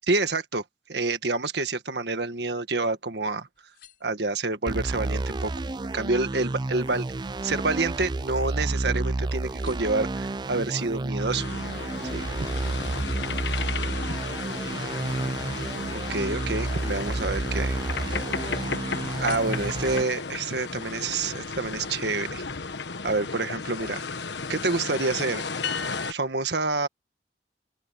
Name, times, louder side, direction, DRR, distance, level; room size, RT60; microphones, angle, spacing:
voice 1, 0.0-0.6 0.9-3.5 4.0-5.5 5.9-7.1 7.4-11.5 12.1-12.2 16.1-18.2 19.2-22.4 23.0-24.2 24.5-25.4 26.1-26.9, right 3 dB, 70° right, 1.7 m, -28 dB
sound 1, 3.5-4.7 5.2-5.7 6.0-9.1 9.4-10.1 10.7-12.2 12.6-14.2 15.1-16.2 16.8-17.6 17.9-18.6 19.1-20.2 20.7-20.8, left 10 dB, 60° left, 7.7 m, -57 dB
sound 2, 4.7-20.0, right 2 dB, 25° right, 0.4 m, -30 dB
sound 3, 11.3-26.1, left 4 dB, 85° left, 1.3 m, -34 dB
open air
head